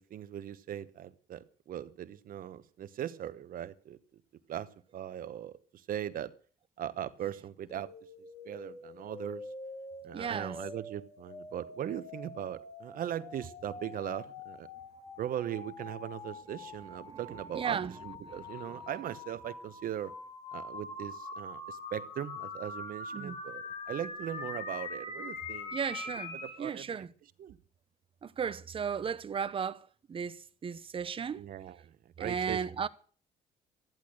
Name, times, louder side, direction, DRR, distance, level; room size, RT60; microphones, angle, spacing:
voice 1, 0.0-4.0 4.5-6.3 6.8-7.9 8.4-9.4 10.0-14.7 15.2-20.1 20.5-25.7 26.4-27.0 27.4-27.6 31.3-32.9, right 11 dB, 55° right, 1.1 m, -39 dB
sound 1, 7.7-26.6, left 3 dB, 40° left, 7.2 m, -44 dB
voice 2, 10.1-10.6 17.0-17.2 17.5-18.0 18.2-18.9 23.1-23.4 25.7-27.1 28.2-31.4 32.2-32.9, right 7 dB, 30° right, 0.9 m, -36 dB
14.0 x 10.5 x 6.4 m
cardioid pair, 110°, 17 cm